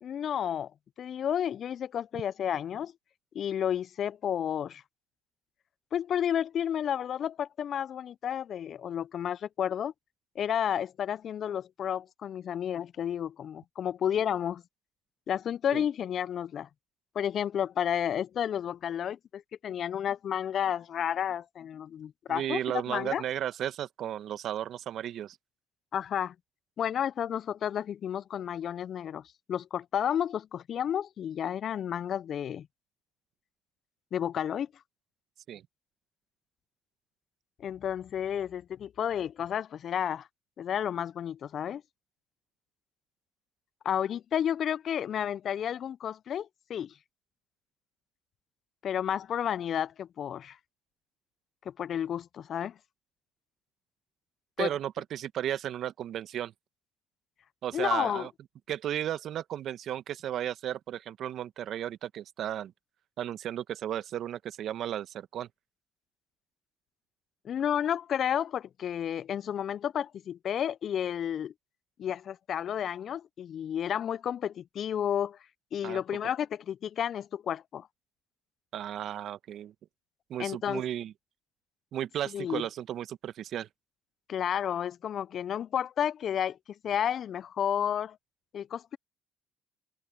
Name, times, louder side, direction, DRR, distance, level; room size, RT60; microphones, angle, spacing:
voice 1, 0.0-0.7 1.0-2.9 3.3-4.8 5.9-9.9 10.4-14.6 15.3-16.7 17.1-23.2 25.9-26.3 26.8-29.2 29.5-32.7 34.1-34.7 37.6-40.3 40.6-41.8 43.8-46.9 48.8-50.6 51.7-52.7 54.6-54.7 57.7-58.3 67.4-71.5 72.0-75.4 75.7-77.9 80.4-80.8 82.3-82.6 84.3-86.6 86.8-88.2 88.5-89.0, left 9 dB, 55° left, 0.6 m, -31 dB
voice 2, 22.3-25.4 35.5-35.6 54.6-56.5 57.6-58.3 58.7-62.7 63.2-65.5 75.8-76.0 78.7-79.7 80.3-81.1 81.9-83.7, right 11 dB, 60° right, 1.6 m, -34 dB
hypercardioid pair, 55°, 0 cm